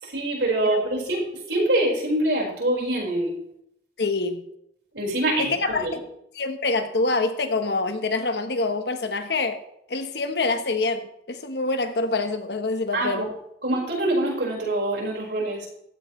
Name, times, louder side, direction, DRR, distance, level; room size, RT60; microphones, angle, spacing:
voice 1, 0.0-3.4 4.9-6.0 12.9-13.3 13.6-15.7, right 1 dB, 90° right, 4.8 m, -25 dB
voice 2, 4.0-4.5 5.4-5.9 6.3-9.6 9.9-13.3, left 3 dB, 75° left, 1.1 m, -26 dB
15.0 x 12.5 x 3.2 m
head